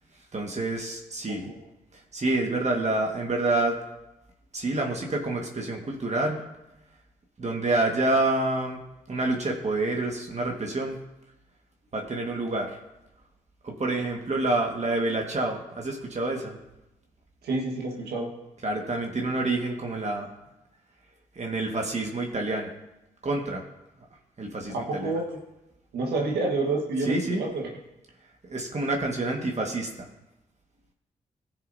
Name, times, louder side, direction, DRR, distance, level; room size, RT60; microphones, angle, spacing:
voice 1, 0.3-1.5 1.9-3.8 4.5-6.4 7.4-8.8 9.1-11.0 11.9-12.8 13.6-16.6 18.6-20.3 21.3-22.7 23.2-23.6 24.4-25.1 27.0-27.5 28.5-30.1, right 2 dB, 45° right, 1 dB, 1.7 m, -28 dB
voice 2, 17.4-18.3 24.7-25.4 25.9-27.6, right 3 dB, 85° right, 1 dB, 1.5 m, -28 dB
15.5 x 6.8 x 2.7 m, 0.94 s
supercardioid pair, 40°, 16 cm